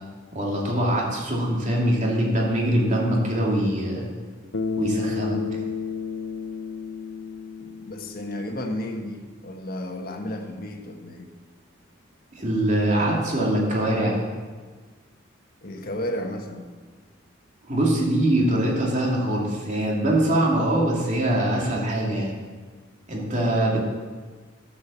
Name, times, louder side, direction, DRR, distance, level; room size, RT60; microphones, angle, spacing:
voice 1, 0.3-4.1 4.8-5.4 12.4-14.2 17.7-22.4 23.1-23.8, right 1 dB, 40° right, -3 dB, 2.6 m, -23 dB
Bass guitar, 4.5-8.9, left 5 dB, 65° left, 0.7 m, -32 dB
voice 2, 7.6-11.3 15.6-16.7, left 1 dB, 50° left, 3 dB, 1.4 m, -33 dB
11.5 x 7.8 x 7.0 m, 1.5 s
head